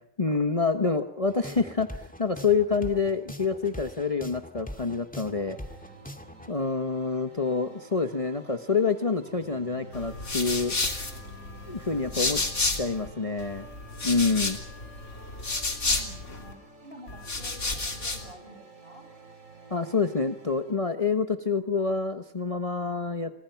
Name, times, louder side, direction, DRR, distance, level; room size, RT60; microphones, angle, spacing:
voice 1, 0.2-5.6 6.5-10.7 11.7-12.4 12.7-13.7 14.0-14.6 19.7-23.3, left 4 dB, 25° left, 7 dB, 1.3 m, -27 dB
sound 1, 1.3-6.5, equal, 5° left, 2.2 m, -42 dB
sound 2, 5.4-20.8, right 1 dB, 70° right, 4.6 m, -50 dB
sound 3, 9.9-13.1 13.4-16.5 17.1-18.3, left 2 dB, 65° left, 3.7 m, -31 dB
voice 2, 15.8-19.1, right 1 dB, 45° right, 4 dB, 8.3 m, -49 dB
30.0 x 26.5 x 5.9 m, 0.70 s
omnidirectional pair, 1.4 m